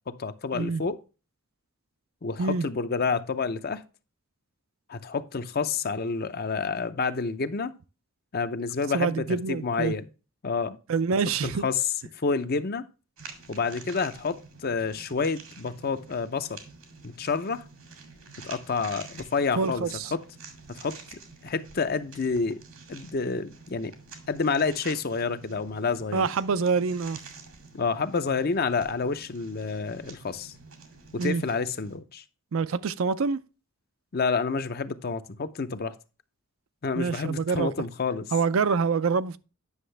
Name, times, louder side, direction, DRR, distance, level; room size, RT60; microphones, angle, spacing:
voice 1, 0.1-1.0 2.2-3.8 4.9-7.7 8.3-10.1 10.4-10.8 11.4-11.9 12.2-12.8 13.5-16.6 17.0-17.6 18.4-20.2 20.7-22.6 22.9-23.9 24.3-26.3 27.7-30.5 31.1-32.2 34.1-35.9 36.8-38.3, left 4 dB, 45° left, 0.6 m, -29 dB
voice 2, 8.9-9.9 10.9-11.6 19.6-20.1 26.1-27.2 31.2-31.4 32.5-33.4 37.0-37.7 38.3-39.4, right 5 dB, 75° right, 0.4 m, -26 dB
sound 1, 13.2-32.0, right 4 dB, 90° right, 2.2 m, -48 dB
9.7 x 6.2 x 3.3 m
head